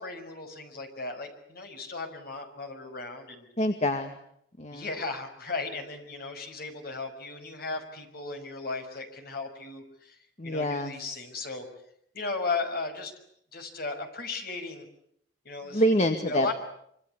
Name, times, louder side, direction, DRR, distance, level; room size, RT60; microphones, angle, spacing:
voice 1, 0.0-3.5 4.7-10.2 10.4-11.6 12.1-13.1 13.5-14.8 15.4-15.8 16.2-16.5, left 3 dB, 60° left, 6 dB, 6.0 m, -36 dB
voice 2, 3.6-4.1 4.6-4.9 10.4-10.9 15.7-16.5, equal, 40° left, 7 dB, 2.0 m, -26 dB
26.0 x 25.5 x 8.3 m, 0.72 s
head